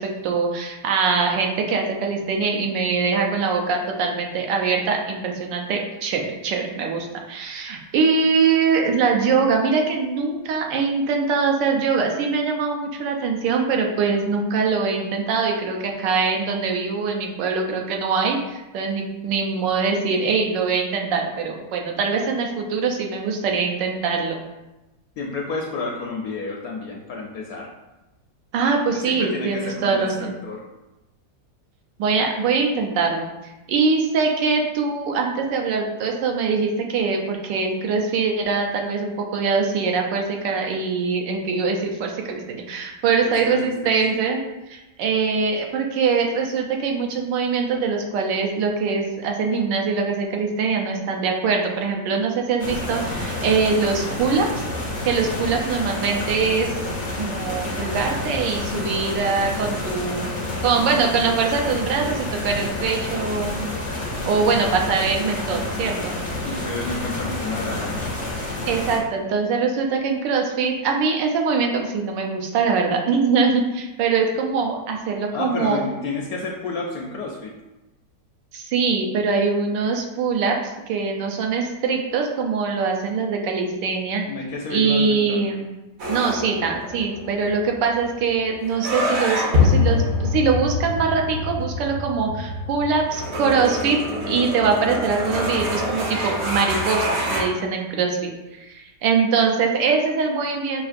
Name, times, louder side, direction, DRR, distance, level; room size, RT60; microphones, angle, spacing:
voice 1, 0.0-24.4 28.5-30.4 32.0-33.3 33.7-44.4 44.7-54.5 55.0-56.7 57.2-60.3 60.6-63.7 64.3-66.2 68.6-75.8 78.5-84.2 84.7-85.6 86.1-94.0 94.3-100.8, right 5 dB, 85° right, 2 dB, 1.3 m, -23 dB
voice 2, 25.2-27.7 28.9-30.6 43.2-44.0 55.4-55.6 66.4-68.0 75.3-77.5 84.3-85.4, left 3 dB, 70° left, -1 dB, 0.9 m, -30 dB
sound 1, 52.6-69.0, left 1 dB, 50° left, 0.5 m, -29 dB
sound 2, 86.0-97.4, left 2 dB, 55° right, 0.8 m, -25 dB
5.7 x 2.4 x 2.5 m, 1.0 s
omnidirectional pair, 1.9 m